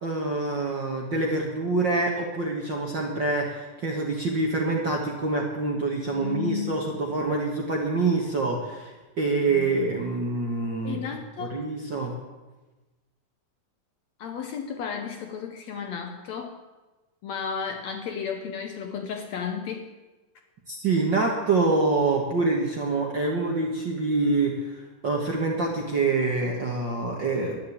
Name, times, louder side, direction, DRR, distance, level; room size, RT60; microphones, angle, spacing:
voice 1, 0.0-11.0 11.4-12.1 20.7-27.6, right 3 dB, 50° right, -1 dB, 1.4 m, -26 dB
voice 2, 6.1-7.1 9.5-9.7 10.8-11.7 14.2-16.6 17.2-19.9, left 7 dB, 70° left, 5 dB, 1.8 m, -33 dB
11.5 x 10.5 x 8.5 m, 1.2 s
omnidirectional pair, 4.0 m